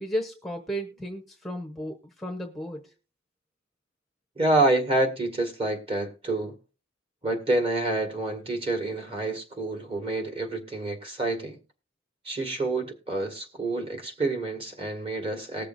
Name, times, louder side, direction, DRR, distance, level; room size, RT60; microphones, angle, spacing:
voice 1, 0.0-2.9, equal, ahead, 0.9 m, -34 dB
voice 2, 4.4-6.5 7.2-11.6 12.3-15.7, right 2 dB, 30° right, 2.0 m, -28 dB
20.0 x 6.6 x 2.6 m
head